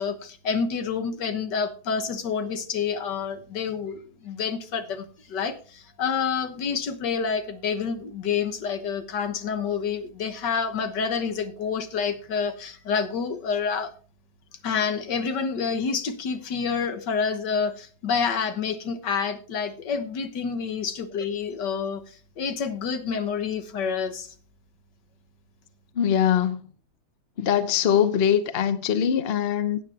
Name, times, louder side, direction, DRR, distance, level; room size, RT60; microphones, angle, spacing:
voice 1, 0.0-13.9 14.6-22.0 22.4-24.3, left 6 dB, 80° left, 1.8 m, -28 dB
voice 2, 25.9-26.7 27.4-29.8, left 9 dB, 45° left, 1.0 m, -22 dB
16.0 x 8.9 x 2.9 m
omnidirectional pair, 1.8 m